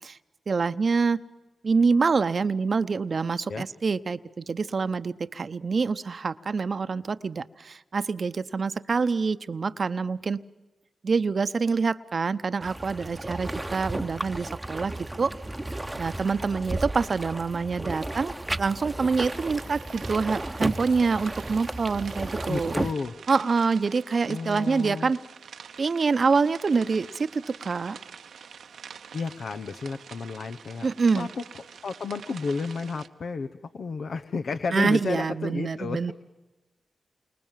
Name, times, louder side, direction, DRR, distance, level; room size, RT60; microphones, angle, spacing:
voice 1, 0.5-1.2 1.6-10.4 11.0-15.3 16.0-22.8 23.3-25.2 25.8-28.0 30.8-31.3 34.7-36.1, right 4 dB, 60° right, 12 dB, 0.9 m, -26 dB
sound 1, 12.6-22.9, right 1 dB, 20° right, 0.9 m, -33 dB
sound 2, 19.2-33.1, right 7 dB, 85° right, 0.9 m, -46 dB
voice 2, 22.4-23.1 24.3-25.1 29.1-30.9 31.1-31.4 31.8-33.5 33.7-36.1, left 4 dB, 75° left, 9 dB, 1.0 m, -32 dB
29.0 x 25.0 x 7.5 m, 1.1 s
cardioid pair, 45°, 0 cm